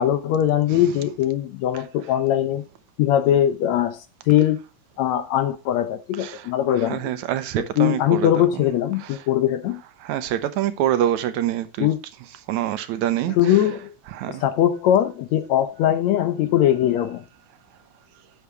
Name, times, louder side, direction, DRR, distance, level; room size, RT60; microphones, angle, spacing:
voice 1, 0.0-2.6 3.0-4.6 5.0-7.1 7.8-9.8 11.8-12.0 13.3-13.9 14.3-17.2, left 11 dB, 70° left, 1.9 m, -21 dB
voice 2, 6.8-8.5 10.0-11.9 12.5-13.4 14.1-14.4, right 11 dB, 75° right, 2.0 m, -25 dB
8.6 x 6.9 x 4.7 m
omnidirectional pair, 3.5 m